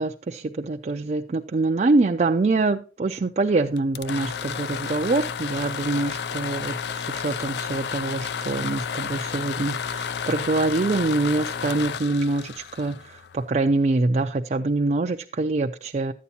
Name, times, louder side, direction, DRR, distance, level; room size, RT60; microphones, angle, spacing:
voice 1, 0.0-16.1, right 3 dB, 40° right, 3 dB, 0.4 m, -25 dB
sound 1, 3.8-13.6, left 7 dB, 65° left, 0.4 m, -31 dB
12.0 x 8.3 x 2.8 m, 0.38 s
head